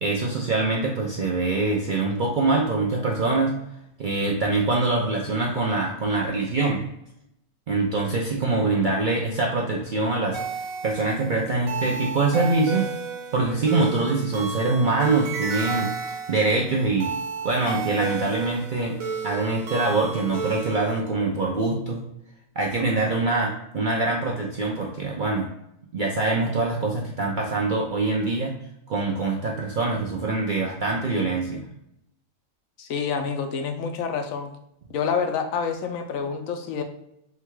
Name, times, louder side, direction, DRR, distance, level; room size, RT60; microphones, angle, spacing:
voice 1, 0.0-3.5 4.0-6.8 7.7-10.4 10.8-12.9 13.3-17.1 17.4-19.0 19.2-22.0 22.6-25.5 25.9-28.6 28.9-31.6, right 3 dB, 60° right, -2 dB, 0.5 m, -24 dB
sound 1, 10.3-21.0, right 5 dB, 80° right, 1.1 m, -32 dB
voice 2, 32.8-34.5 34.9-36.8, left 6 dB, 75° left, 5 dB, 1.0 m, -27 dB
3.7 x 2.3 x 4.5 m, 0.80 s
omnidirectional pair, 1.4 m